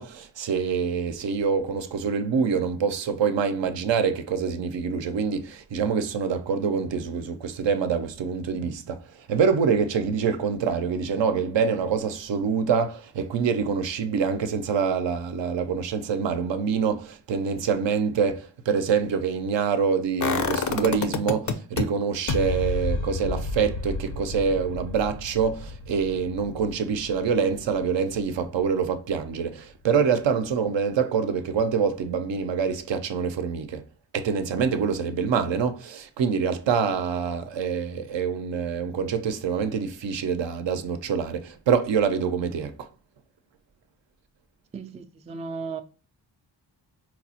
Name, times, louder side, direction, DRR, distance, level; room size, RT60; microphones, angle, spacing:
voice 1, 0.0-33.9 34.1-42.9, right 6 dB, 65° right, 0.6 m, -25 dB
sound 1, 20.2-21.8 22.3-28.1 28.4-28.5, left 4 dB, 40° left, 0.5 m, -30 dB
voice 2, 44.7-45.8, right 4 dB, 15° right, 0.3 m, -35 dB
4.3 x 2.0 x 2.7 m
cardioid pair, 60°, 47 cm